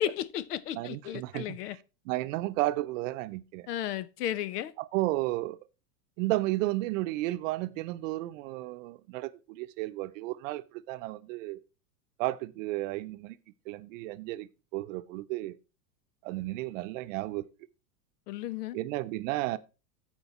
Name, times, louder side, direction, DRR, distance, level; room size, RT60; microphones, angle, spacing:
voice 1, 0.0-1.8 3.7-4.7 18.3-18.8, left 11 dB, 85° left, 0.9 m, -34 dB
voice 2, 0.7-1.6 2.1-3.7 4.9-5.6 6.2-11.6 12.2-13.4 13.7-15.6 16.2-17.4 18.7-19.6, right 18 dB, 55° right, 0.7 m, -33 dB
13.5 x 4.6 x 4.2 m
supercardioid pair, 140°, 46 cm